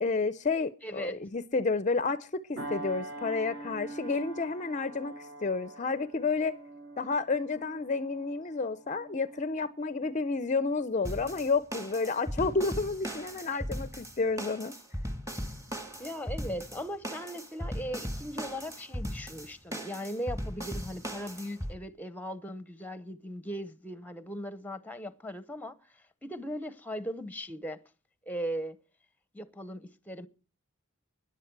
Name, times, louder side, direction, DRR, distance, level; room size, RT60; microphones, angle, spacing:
voice 1, 0.0-6.6 7.0-14.7, left 4 dB, 35° left, 0.5 m, -30 dB
voice 2, 0.8-1.2 13.5-13.6 15.9-25.8 26.2-27.8 28.3-28.8 29.3-30.3, equal, 10° left, 0.8 m, -38 dB
sound 1, 2.6-11.4 11.9-12.1, right 2 dB, 60° right, 7.2 m, -45 dB
Funk Shuffle A, 11.0-21.7, equal, 15° right, 1.7 m, -38 dB
16.0 x 11.0 x 4.6 m
head